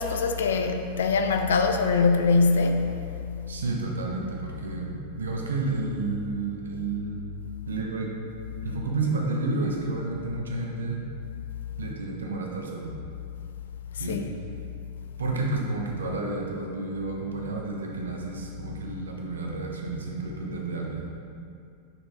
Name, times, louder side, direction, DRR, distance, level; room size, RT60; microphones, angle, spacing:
voice 1, 0.0-3.0 13.9-14.2, left 4 dB, 65° left, 6 dB, 0.4 m, -23 dB
voice 2, 3.5-7.2 7.7-8.1 8.6-11.1 11.8-12.9 14.0-14.2 15.2-21.0, right 3 dB, 70° right, 0 dB, 0.8 m, -31 dB
5.5 x 4.3 x 4.0 m, 2.5 s
figure-of-eight pair, 90°, 0 cm